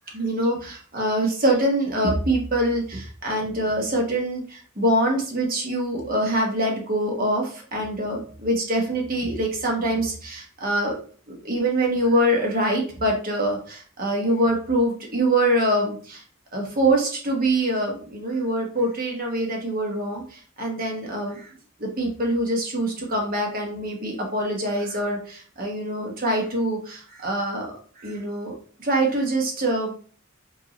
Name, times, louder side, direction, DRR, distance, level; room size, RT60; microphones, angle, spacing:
voice 1, 0.1-11.0 11.3-16.2 16.5-21.5 21.8-27.7 28.0-28.5 28.8-30.0, right 1 dB, 45° right, 0 dB, 1.1 m, -24 dB
4.8 x 2.8 x 3.0 m, 0.43 s
head